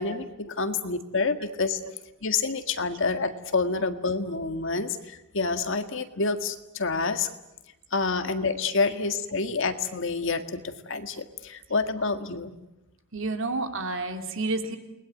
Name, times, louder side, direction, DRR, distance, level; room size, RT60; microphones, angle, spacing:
voice 1, 0.0-1.8 2.2-7.3 7.9-12.5, left 4 dB, 65° left, 8 dB, 1.8 m, -28 dB
voice 2, 13.1-14.8, right 3 dB, 65° right, 6 dB, 3.0 m, -29 dB
29.0 x 21.0 x 9.5 m, 0.95 s
head